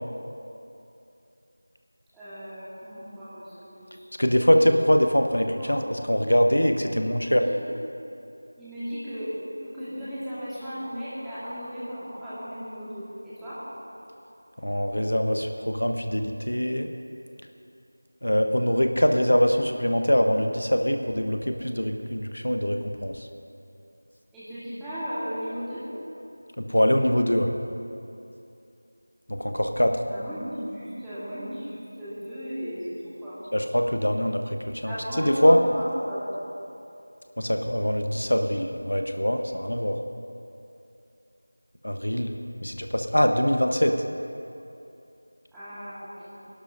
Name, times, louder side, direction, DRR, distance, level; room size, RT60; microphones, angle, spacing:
voice 1, 2.1-4.4 5.4-5.8 6.9-7.6 8.6-9.3 9.6-13.6 24.3-25.8 30.0-33.4 34.8-36.3 45.5-46.5, equal, 5° right, -15 dB, 1.6 m, -36 dB
voice 2, 4.2-5.8 6.1-7.4 14.6-16.9 18.2-23.1 26.6-27.5 29.3-30.0 33.5-34.4 34.8-34.9 35.4-35.6 37.4-40.0 41.8-42.3 42.6-43.9, equal, 90° left, 5 dB, 1.0 m, -23 dB
21.0 x 11.5 x 2.7 m, 2.7 s
figure-of-eight pair, 175°, 0 cm